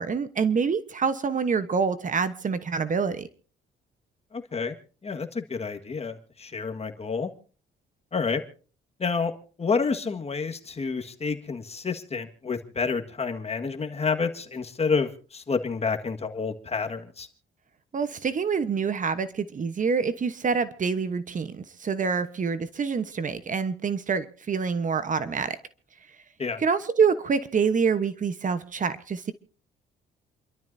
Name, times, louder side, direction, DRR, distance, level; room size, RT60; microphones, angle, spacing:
voice 1, 0.0-3.3 17.9-25.6 26.6-29.3, right 5 dB, 40° right, 12 dB, 1.1 m, -26 dB
voice 2, 4.3-4.7 5.0-7.3 8.1-8.4 9.0-9.3 9.6-17.3 26.4-26.6, left 5 dB, 30° left, 6 dB, 1.7 m, -29 dB
28.5 x 12.5 x 2.7 m, 0.40 s
cardioid pair, 90°, 20 cm